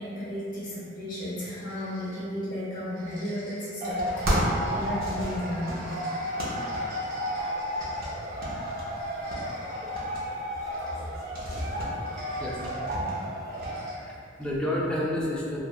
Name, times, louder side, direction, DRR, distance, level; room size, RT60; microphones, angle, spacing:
voice 1, 0.0-6.0 11.9-12.0, left 1 dB, 50° left, -9 dB, 0.8 m, -34 dB
sound 1, 1.2-2.5 2.8-8.4 8.8-10.1 10.6-11.3 11.9-12.8 13.5-14.5, equal, 20° right, 1.0 m, -50 dB
sound 2, 3.8-13.9, equal, 55° right, 0.5 m, -31 dB
voice 2, 11.7-12.0 12.4-13.2 13.9-15.6, left 1 dB, 5° left, -6 dB, 0.3 m, -31 dB
2.7 x 2.2 x 2.2 m, 2.4 s
head